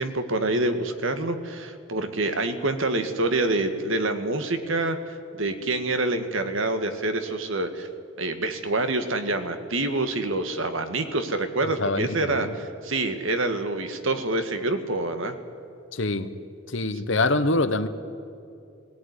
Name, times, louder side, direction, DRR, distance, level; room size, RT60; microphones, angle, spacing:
voice 1, 0.0-7.9 8.2-15.4, right 2 dB, 65° right, 8 dB, 1.7 m, -26 dB
voice 2, 11.8-12.5 15.9-16.3 16.7-17.9, left 2 dB, 60° left, 11 dB, 1.1 m, -25 dB
18.0 x 17.5 x 9.7 m, 2.6 s
head